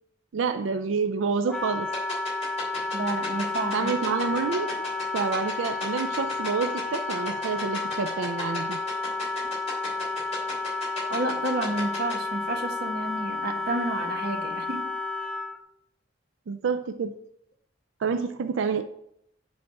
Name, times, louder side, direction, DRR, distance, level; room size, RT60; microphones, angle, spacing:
voice 1, 0.3-1.9 3.7-4.7 5.1-8.8 16.5-17.1 18.0-18.8, right 5 dB, 75° right, 8 dB, 0.4 m, -28 dB
Wind instrument woodwind instrument, 1.5-15.6, left 3 dB, 5° left, 0.5 m, -31 dB
sound 1, 1.9-12.1, left 3 dB, 35° left, 3.0 m, -35 dB
voice 2, 2.9-3.9 11.1-14.8, right 2 dB, 55° right, 4 dB, 1.1 m, -30 dB
7.8 x 3.4 x 5.8 m, 0.74 s
head